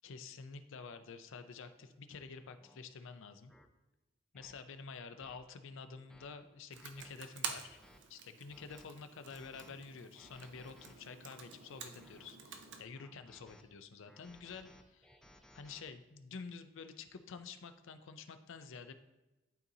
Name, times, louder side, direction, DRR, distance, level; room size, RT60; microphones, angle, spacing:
voice 1, 0.0-3.5 4.3-7.8 8.1-15.2 15.5-18.9, left 5 dB, 65° left, 9 dB, 0.5 m, -49 dB
sound 1, 1.8-2.0 2.6-2.8 3.5-3.7 4.3-4.5 5.2-5.4 5.9-6.3 6.7-7.1 7.6-8.0 8.5-8.9 9.3-9.7 10.1-10.9 11.6-12.3 12.9-13.6 14.0-15.8, left 1 dB, ahead, 0.5 m, -62 dB
Computer keyboard, 6.7-12.8, right 6 dB, 60° right, 0.6 m, -48 dB
11.5 x 4.0 x 2.7 m, 1.0 s
head